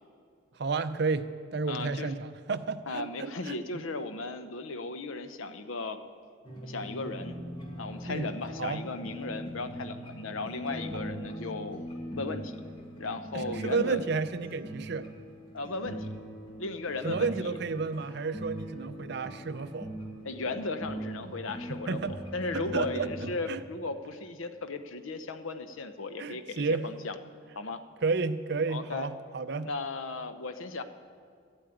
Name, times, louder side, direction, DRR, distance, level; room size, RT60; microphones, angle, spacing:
voice 1, 0.6-3.8 8.0-8.3 8.6-8.8 13.3-15.1 17.0-19.9 21.7-22.1 22.5-23.6 26.2-26.9 28.0-29.7, right 4 dB, 50° right, 11 dB, 0.5 m, -32 dB
voice 2, 1.7-2.1 2.9-6.0 6.6-7.4 7.8-11.8 12.1-12.5 13.0-14.0 15.5-16.1 16.6-17.5 20.2-27.1 27.6-27.8 28.7-29.1 29.6-30.8, left 3 dB, 75° left, 10 dB, 0.7 m, -36 dB
sound 1, 6.4-23.3, equal, 25° left, 1.7 m, -41 dB
11.5 x 8.6 x 9.0 m, 2.1 s
head